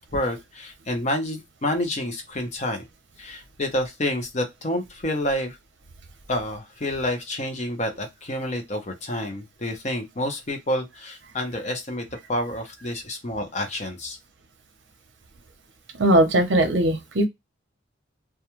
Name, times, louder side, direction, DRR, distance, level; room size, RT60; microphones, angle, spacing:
voice 1, 0.1-2.8 3.2-5.6 6.3-14.2, left 1 dB, 35° left, 0.6 m, -29 dB
voice 2, 16.0-17.3, right 1 dB, 65° right, 0.7 m, -19 dB
2.3 x 2.2 x 2.9 m
head